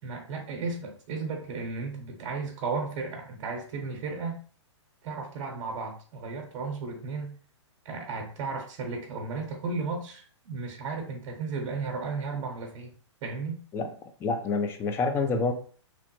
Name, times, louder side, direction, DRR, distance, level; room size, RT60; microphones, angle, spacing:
voice 1, 0.0-4.4 5.0-7.3 7.8-12.9 13.2-13.6, right 4 dB, 35° right, 2 dB, 0.9 m, -34 dB
voice 2, 14.2-15.5, left 4 dB, 15° left, 6 dB, 0.4 m, -27 dB
3.0 x 2.0 x 2.9 m, 0.42 s
hypercardioid pair, 130°, 16 cm